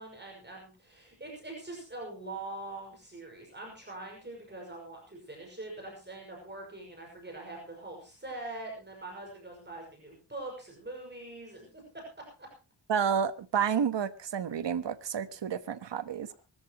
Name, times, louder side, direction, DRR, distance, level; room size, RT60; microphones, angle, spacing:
voice 1, 0.0-12.5, right 2 dB, 25° right, 6.2 m, -43 dB
voice 2, 12.9-16.3, right 7 dB, 85° right, 1.3 m, -30 dB
24.5 x 13.5 x 3.1 m
wide cardioid pair, 105°, 42 cm